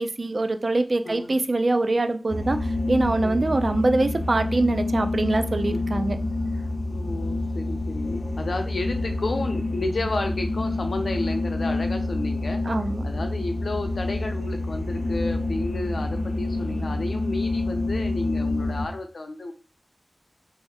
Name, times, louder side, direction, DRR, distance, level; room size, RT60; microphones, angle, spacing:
voice 1, 0.0-2.6 2.9-6.2 12.7-13.0, right 2 dB, 55° right, 9 dB, 0.4 m, -24 dB
sound 1, 2.3-18.8, left 2 dB, 35° left, 0.7 m, -27 dB
voice 2, 5.7-6.1 6.5-12.6 13.0-19.5, left 2 dB, 75° left, 5 dB, 0.5 m, -32 dB
3.1 x 2.7 x 3.5 m, 0.36 s
wide cardioid pair, 65°, 0 cm